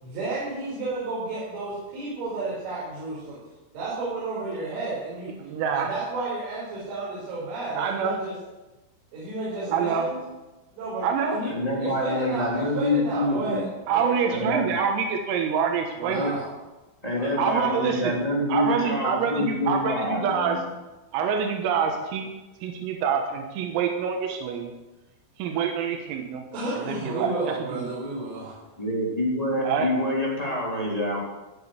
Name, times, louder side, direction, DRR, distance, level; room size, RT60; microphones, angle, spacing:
voice 1, 0.0-3.4 3.7-5.3 5.7-8.3 9.1-10.2 10.7-11.5 11.8-14.5 16.0-16.5 17.2-17.9 26.5-28.6, right 3 dB, 70° right, -8 dB, 7.3 m, -32 dB
voice 2, 5.4-5.9 7.8-8.2 9.7-10.1 11.0-11.4 13.9-16.3 17.4-18.2 18.5-20.6 21.1-22.3 22.6-24.7 25.4-26.4 26.8-27.9 29.6-29.9, right 6 dB, 90° right, 3 dB, 4.1 m, -26 dB
voice 3, 11.5-13.7 14.3-14.7 16.1-16.3 17.0-20.6 28.8-31.2, left 1 dB, 10° left, -4 dB, 2.7 m, -26 dB
17.5 x 7.4 x 8.2 m, 1.1 s
omnidirectional pair, 5.9 m